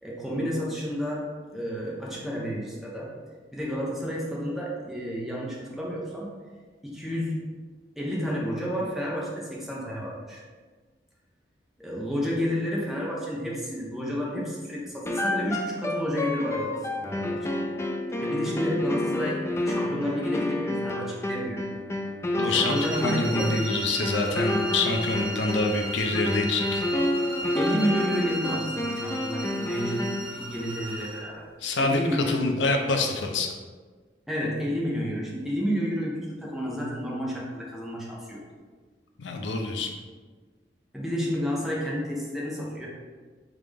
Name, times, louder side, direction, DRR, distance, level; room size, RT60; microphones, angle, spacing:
voice 1, 0.0-1.3 1.5-3.1 3.5-6.3 6.8-7.4 8.0-10.4 11.8-17.4 18.2-21.6 22.5-23.5 27.5-31.5 31.8-32.4 34.3-38.4 40.9-42.9, equal, ahead, -4 dB, 0.8 m, -30 dB
sound 1, 15.1-30.4, left 1 dB, 15° left, 0.3 m, -30 dB
voice 2, 22.4-26.8 31.6-33.5 39.2-39.9, left 3 dB, 80° left, 3 dB, 0.5 m, -26 dB
sound 2, 22.6-31.3, right 1 dB, 25° right, 1.4 m, -35 dB
3.7 x 3.7 x 3.4 m, 1.4 s
head